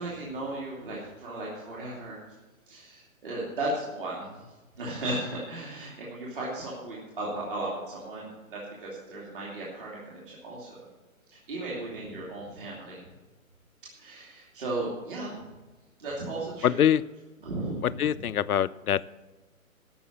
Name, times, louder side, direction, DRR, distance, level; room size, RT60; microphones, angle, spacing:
voice 1, 0.0-2.2 2.7-4.5 4.8-10.8 11.3-13.0 14.0-15.4 16.0-16.9 17.4-18.2, right 2 dB, 35° right, -5 dB, 2.7 m, -36 dB
voice 2, 16.6-17.0 17.8-19.0, left 10 dB, 80° left, 17 dB, 0.6 m, -24 dB
14.5 x 6.1 x 7.2 m, 1.1 s
hypercardioid pair, 165°, 43 cm